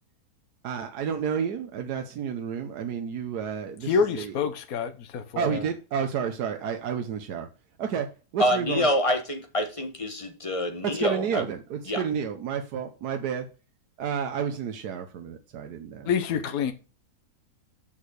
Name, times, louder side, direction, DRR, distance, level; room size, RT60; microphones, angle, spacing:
voice 1, 0.6-4.3 5.4-7.5 7.8-8.1 8.3-8.9 10.8-13.5 14.0-16.1, right 7 dB, 85° right, 1.4 m, -30 dB
voice 2, 3.8-5.6 16.0-16.7, left 6 dB, 65° left, 1.4 m, -27 dB
voice 3, 8.4-11.4 11.9-12.0, left 1 dB, 20° left, 1.4 m, -26 dB
6.4 x 5.6 x 6.5 m
omnidirectional pair, 1.6 m